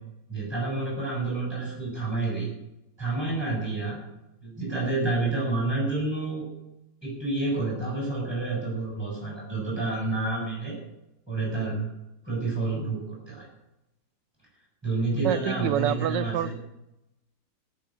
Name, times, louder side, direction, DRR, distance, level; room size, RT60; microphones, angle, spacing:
voice 1, 0.3-2.5 3.0-4.0 4.4-6.5 7.0-10.8 11.3-11.8 12.2-13.5 14.8-16.5, right 3 dB, 15° right, -4 dB, 7.0 m, -29 dB
voice 2, 15.2-16.5, right 10 dB, 85° right, 15 dB, 1.4 m, -27 dB
15.0 x 7.6 x 8.6 m, 0.89 s
omnidirectional pair, 1.9 m